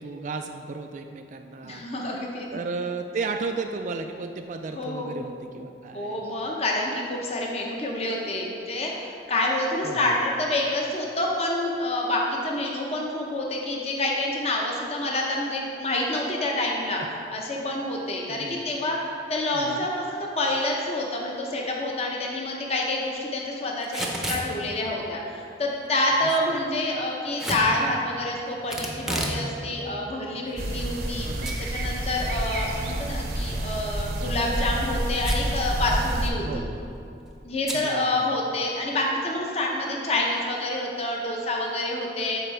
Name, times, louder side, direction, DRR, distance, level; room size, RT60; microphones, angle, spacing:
voice 1, 0.0-2.2 2.5-6.2 9.8-10.1 17.0-17.1 18.3-18.6 19.5-19.9 26.2-26.7 31.2-31.6 36.4-36.8 37.7-38.3, right 4 dB, 45° right, 5 dB, 0.3 m, -34 dB
voice 2, 1.6-2.5 4.7-5.1 5.9-17.0 17.3-36.7 37.4-42.4, left 1 dB, 35° left, -1 dB, 0.7 m, -27 dB
Packing tape duct tape / Tearing, 23.8-24.5 27.4-27.7 28.7-29.4 29.8-29.9 30.6-31.2 31.4-31.5 31.9-32.0 34.0-34.3 35.2-35.6 35.9-36.0 36.2-36.5 37.6-37.8, right 1 dB, 5° right, 0.7 m, -31 dB
sound 1, 30.6-36.3, right 1 dB, 60° right, 0.7 m, -29 dB
12.5 x 4.5 x 3.3 m, 2.6 s
head